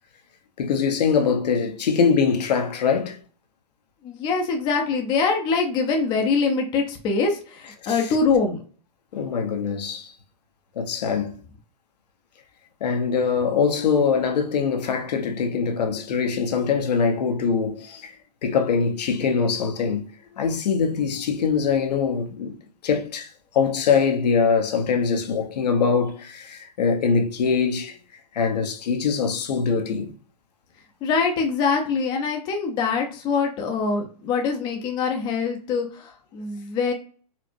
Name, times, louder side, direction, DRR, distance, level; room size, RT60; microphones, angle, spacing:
voice 1, 0.6-3.2 7.8-8.0 9.1-10.1 10.8-11.4 12.8-18.2 18.4-20.1 20.3-22.5 22.8-28.0 28.3-30.1, left 5 dB, 75° left, 0.8 m, -23 dB
voice 2, 4.0-8.6 31.0-36.9, left 4 dB, 20° left, 0.5 m, -24 dB
4.4 x 2.0 x 2.5 m
hypercardioid pair, 145°, 21 cm